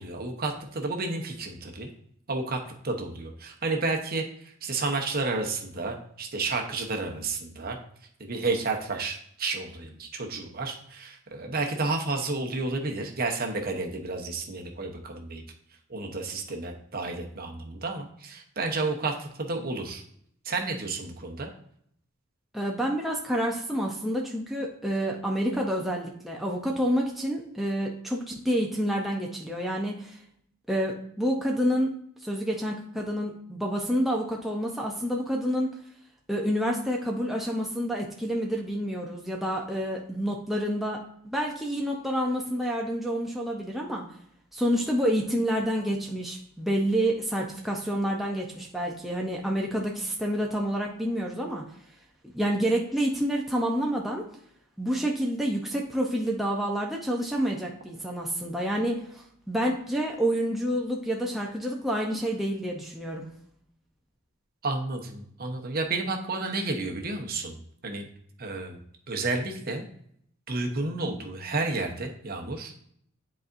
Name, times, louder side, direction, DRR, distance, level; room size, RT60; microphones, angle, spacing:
voice 1, 0.0-1.9 2.3-7.8 8.2-15.4 15.9-20.0 20.4-21.5 64.6-67.6 67.8-68.1 68.4-68.8 69.1-69.8 70.5-72.7, right 3 dB, 45° right, 3 dB, 0.9 m, -31 dB
voice 2, 22.5-30.2 30.7-31.9 32.2-35.7 36.3-44.0 44.5-51.6 52.3-54.2 54.8-63.3, equal, ahead, -2 dB, 0.6 m, -28 dB
10.5 x 4.1 x 2.6 m, 0.67 s
head